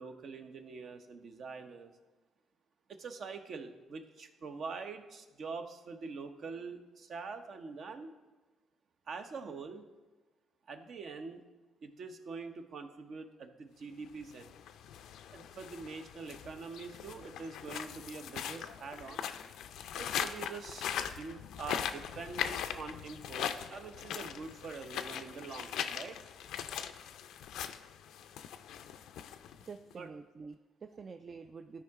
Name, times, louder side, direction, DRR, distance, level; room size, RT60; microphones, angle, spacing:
voice 1, 0.0-1.9 2.9-8.1 9.1-9.8 10.7-11.5 11.8-14.5 15.3-19.3 19.9-26.2 30.0-30.1, right 4 dB, 60° right, 7 dB, 0.8 m, -44 dB
sound 1, 14.2-29.9, left 9 dB, 85° left, 0.4 m, -40 dB
voice 2, 29.7-31.8, right 5 dB, 45° right, 7 dB, 0.3 m, -47 dB
13.0 x 4.8 x 3.6 m, 1.2 s
cardioid pair, 90°, 0 cm